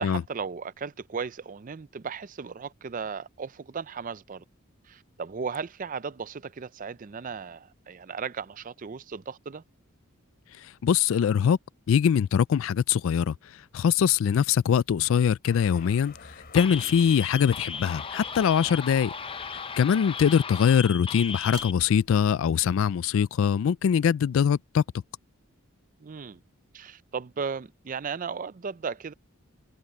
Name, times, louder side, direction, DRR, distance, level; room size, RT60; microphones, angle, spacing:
voice 1, 0.0-4.4 4.8-9.6 16.8-16.9 18.6-18.8 26.0-26.4 26.7-29.1, right 5 dB, 40° right, 0.4 m, -36 dB
voice 2, 10.8-11.6 11.9-13.3 13.7-16.1 16.5-19.1 19.8-24.8, left 7 dB, 65° left, 0.3 m, -22 dB
sound 1, 15.4-20.5, left 4 dB, 45° left, 3.6 m, -49 dB
sound 2, 16.6-21.7, left 6 dB, 25° left, 0.7 m, -36 dB
sound 3, 19.7-22.8 26.2-26.3, right 3 dB, 20° right, 2.4 m, -50 dB
head